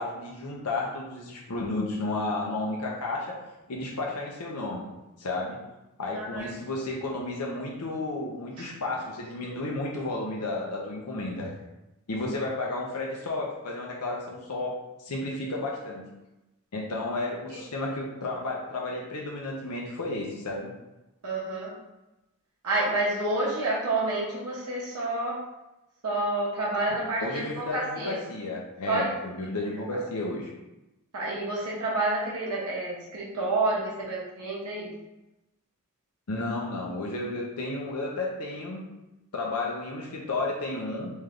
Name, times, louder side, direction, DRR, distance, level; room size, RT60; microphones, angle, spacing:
voice 1, 0.0-3.4 3.7-4.9 5.2-5.6 6.0-11.5 12.1-16.1 16.7-20.7 27.2-30.5 36.3-38.8 39.3-41.1, left 2 dB, 90° left, -2 dB, 0.8 m, -32 dB
voice 2, 6.1-6.5 8.6-8.7 17.5-17.6 21.2-21.7 22.6-25.4 26.0-28.2 28.9-29.1 29.9-30.0 31.1-34.9, right 2 dB, 70° right, -5 dB, 1.1 m, -29 dB
3.3 x 3.2 x 3.7 m, 0.97 s
head